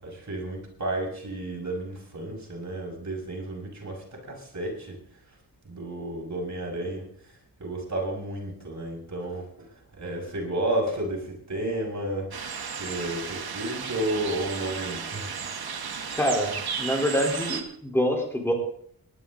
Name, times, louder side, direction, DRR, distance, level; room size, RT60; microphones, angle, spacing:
voice 1, 0.0-5.0 5.6-7.1 7.6-9.7 10.0-12.3 12.8-15.3, right 1 dB, 50° right, -2 dB, 6.4 m, -32 dB
sound 1, 12.3-17.6, right 6 dB, 75° right, 1.6 m, -34 dB
voice 2, 16.1-16.5 16.8-18.5, equal, 5° left, 2 dB, 3.8 m, -25 dB
19.0 x 11.5 x 3.9 m, 0.63 s
wide cardioid pair, 75°, 37 cm